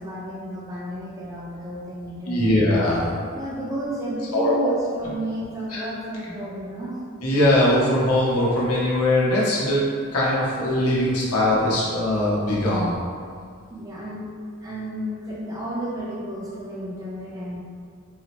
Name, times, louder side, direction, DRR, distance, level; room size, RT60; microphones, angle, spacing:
voice 1, 0.0-2.6 3.3-7.2 13.7-14.3 14.6-17.6, right 1 dB, 15° right, -6 dB, 0.5 m, -32 dB
voice 2, 2.3-3.1 4.3-4.8 5.7-5.8 7.2-9.8 10.1-12.9, left 1 dB, 90° left, -6 dB, 0.8 m, -21 dB
4.0 x 2.0 x 2.9 m, 2.1 s
head